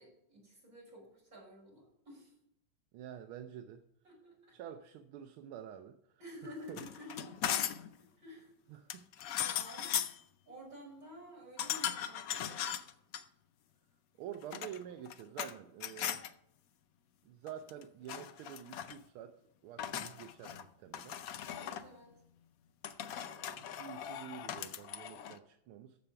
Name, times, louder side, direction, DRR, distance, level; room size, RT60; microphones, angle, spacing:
voice 1, 0.0-2.3 4.0-4.6 6.2-7.3 8.2-8.5 9.4-9.9 10.4-12.7 21.5-22.1, equal, 40° right, -4 dB, 6.0 m, -51 dB
voice 2, 2.9-3.8 4.5-6.8 8.7-9.1 14.2-16.2 17.2-21.2 23.1-26.0, right 9 dB, 80° right, 7 dB, 1.5 m, -48 dB
sound 1, 6.7-7.9 8.9-10.2 11.6-13.2 14.3-15.5 15.8-16.3 17.5-17.8 18.1-19.0 19.8-20.6 20.9-21.9 22.8-25.4, left 10 dB, 85° left, 0.7 m, -38 dB
14.0 x 5.2 x 5.7 m, 0.77 s
omnidirectional pair, 2.3 m